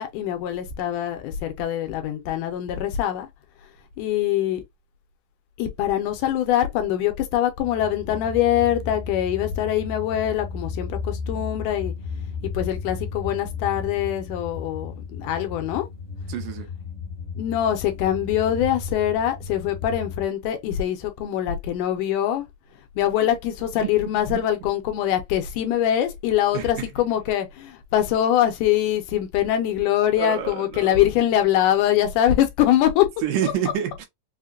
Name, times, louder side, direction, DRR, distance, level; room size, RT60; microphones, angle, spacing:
voice 1, 0.0-3.3 4.0-4.6 5.6-11.9 12.4-15.9 17.4-22.5 23.0-33.1 33.4-33.5, left 11 dB, 80° left, 2.0 m, -23 dB
sound 1, 7.6-20.2, left 5 dB, 35° left, 0.7 m, -34 dB
voice 2, 16.3-16.7 23.8-23.9 24.3-24.4 26.5-26.7 30.2-31.0 33.2-34.1, right 9 dB, 75° right, 2.4 m, -27 dB
5.6 x 2.1 x 2.5 m
omnidirectional pair, 4.0 m